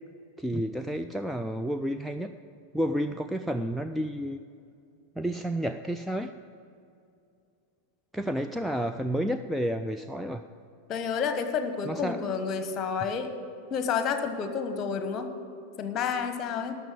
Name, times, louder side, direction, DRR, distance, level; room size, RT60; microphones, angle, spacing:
voice 1, 0.4-2.3 2.7-4.4 5.2-6.3 8.1-10.4 11.8-12.2, equal, ahead, 6 dB, 0.3 m, -30 dB
voice 2, 10.9-13.3 13.7-15.3 15.8-16.7, left 6 dB, 30° left, 8 dB, 1.1 m, -30 dB
12.0 x 6.7 x 8.9 m, 2.5 s
figure-of-eight pair, 90°, 0 cm